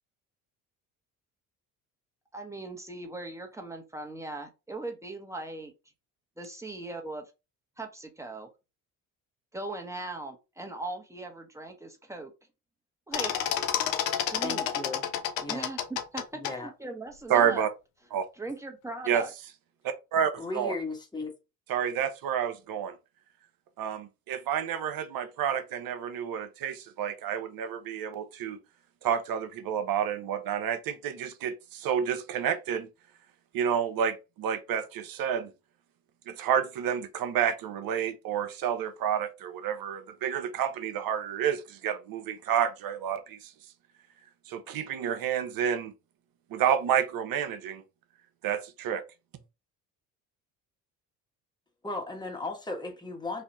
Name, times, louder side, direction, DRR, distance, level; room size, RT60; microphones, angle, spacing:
voice 1, 2.3-5.7 6.4-7.3 7.8-8.5 9.5-12.3 13.1-13.5 14.3-14.7 15.5-17.7 18.4-19.3, right 2 dB, 5° right, 1.4 m, -39 dB
sound 1, 13.1-16.5, left 9 dB, 90° left, 0.6 m, -30 dB
voice 2, 14.4-15.0 15.4-15.7 16.3-16.7 20.4-21.3 51.8-53.4, left 3 dB, 10° left, 1.5 m, -36 dB
voice 3, 17.3-17.7 18.1-18.2 19.1-19.2 19.8-20.7 21.7-23.0 23.8-28.6 29.0-32.9 33.5-35.5 36.3-43.5 44.5-45.9 46.5-47.8 48.4-49.0, right 8 dB, 60° right, 0.9 m, -29 dB
3.3 x 2.7 x 4.0 m
hypercardioid pair, 65°, 39 cm